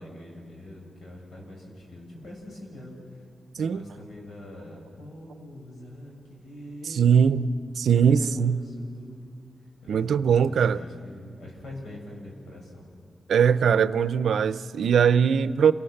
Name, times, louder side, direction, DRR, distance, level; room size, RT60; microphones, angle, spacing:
voice 1, 0.0-3.2 3.6-7.3 7.9-9.5 9.8-12.8, left 1 dB, 70° left, 6.9 m, -43 dB
voice 2, 6.9-7.5 7.8-8.6 9.9-10.8 13.3-15.7, right 7 dB, 85° right, 0.6 m, -21 dB
28.0 x 18.5 x 6.6 m
wide cardioid pair, 105°, 0 cm